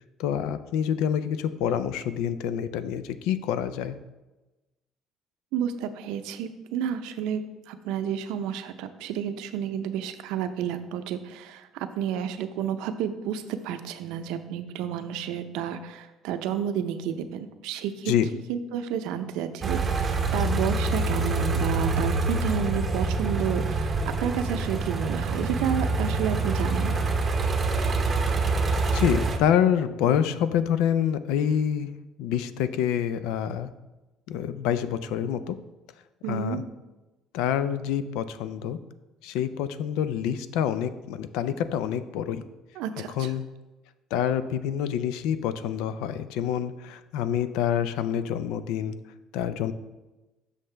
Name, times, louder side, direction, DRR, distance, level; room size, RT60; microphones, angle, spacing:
voice 1, 0.2-4.0 18.1-18.3 28.9-31.9 32.2-33.7 34.3-35.6 36.2-36.6 37.3-38.8 39.2-42.4 43.1-43.4 44.1-49.0 49.3-49.7, left 9 dB, 90° left, 13 dB, 0.4 m, -27 dB
voice 2, 5.5-18.1 18.5-27.0 36.2-36.6 42.8-43.3, right 8 dB, 90° right, 9 dB, 0.6 m, -31 dB
sound 1, 19.6-29.4, right 3 dB, 25° right, 0.7 m, -26 dB
7.5 x 6.3 x 3.3 m, 1.1 s
cardioid pair, 130°, 0 cm